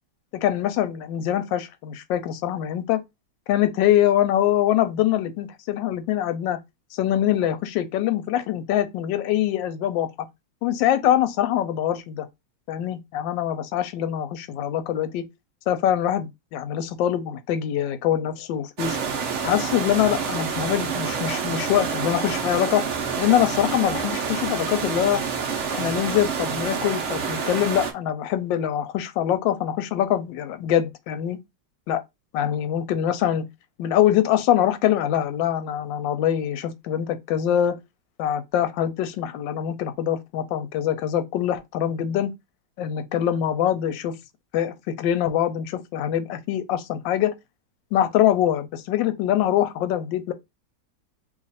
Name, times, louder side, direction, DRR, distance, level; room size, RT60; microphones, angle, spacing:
voice 1, 0.3-3.0 3.5-6.6 6.9-10.1 10.6-12.3 12.7-15.2 15.7-19.0 19.4-22.8 23.2-25.2 25.7-31.4 31.9-32.0 32.3-33.5 33.8-37.8 38.2-42.3 42.8-44.1 44.5-47.3 47.9-50.3, left 11 dB, 85° left, 1.3 m, -24 dB
sound 1, 18.8-27.9, right 6 dB, 60° right, 0.8 m, -28 dB
3.0 x 2.4 x 3.9 m
omnidirectional pair, 2.0 m